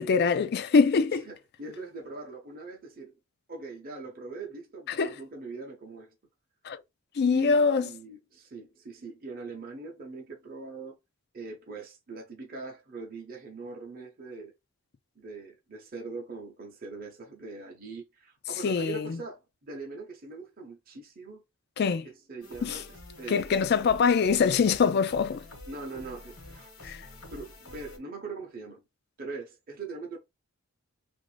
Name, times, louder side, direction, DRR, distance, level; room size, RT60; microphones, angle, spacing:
voice 1, 0.0-1.3 4.9-5.1 6.6-6.8 7.2-7.9 18.6-19.2 21.8-22.1 22.6-22.8 23.3-25.4 26.8-27.0, left 5 dB, 50° left, 0.4 m, -24 dB
voice 2, 1.2-3.1 3.5-6.2 7.3-11.0 11.3-14.5 15.2-21.4 22.0-23.5 25.7-26.9 27.3-28.8 29.2-30.2, right 3 dB, 40° right, 0.7 m, -42 dB
sound 1, 22.4-28.0, left 1 dB, 65° left, 1.1 m, -48 dB
3.0 x 2.6 x 3.2 m
head